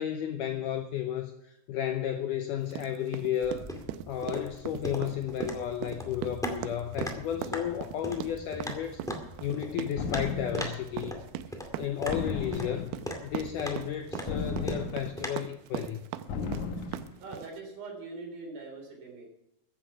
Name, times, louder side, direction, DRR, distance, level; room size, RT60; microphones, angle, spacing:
voice 1, 0.0-3.7 4.1-9.0 9.4-11.2 11.8-13.0 13.2-16.0, left 10 dB, 80° left, 6 dB, 1.9 m, -33 dB
sound 1, 2.7-17.6, right 12 dB, 80° right, 2.4 m, -40 dB
sound 2, 3.4-15.3, equal, 5° left, 0.3 m, -40 dB
sound 3, 10.0-10.8 12.1-13.0 14.3-15.3 16.3-17.1, left 4 dB, 60° left, 2.2 m, -35 dB
voice 2, 17.2-19.3, right 3 dB, 65° right, 2 dB, 5.3 m, -42 dB
15.0 x 9.8 x 5.9 m, 0.87 s
omnidirectional pair, 4.6 m